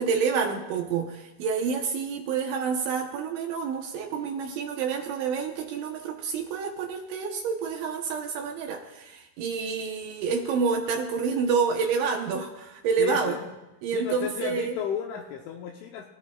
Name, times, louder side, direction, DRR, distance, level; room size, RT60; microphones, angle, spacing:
voice 1, 0.0-13.4 13.8-14.8, right 5 dB, 75° right, 2 dB, 3.0 m, -28 dB
voice 2, 13.0-13.5 13.9-16.1, left 8 dB, 80° left, 2 dB, 3.1 m, -33 dB
28.0 x 17.0 x 2.4 m, 0.99 s
omnidirectional pair, 5.9 m